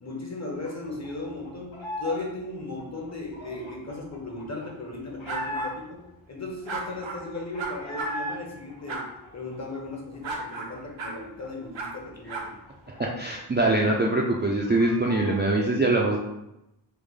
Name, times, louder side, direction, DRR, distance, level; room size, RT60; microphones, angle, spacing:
voice 1, 0.0-6.0 6.3-9.1 9.3-12.5, left 2 dB, 35° left, -1 dB, 0.8 m, -36 dB
sound 1, 0.6-2.3 2.5-6.0 6.5-6.6 6.7-8.4 8.7-10.4 10.7-10.8 11.1-13.6 13.9-14.0 14.3-15.5, equal, 85° left, 0.8 m, -39 dB
sound 2, 5.3-5.7 6.7-7.2 7.6-8.1 8.9-9.0 10.2-10.7 11.0-11.2 11.7-11.9 12.3-12.4, right 4 dB, 80° right, 0.6 m, -33 dB
voice 2, 12.9-16.2, right 2 dB, 25° right, -2 dB, 0.3 m, -23 dB
3.2 x 2.1 x 3.5 m, 0.88 s
wide cardioid pair, 65°, 46 cm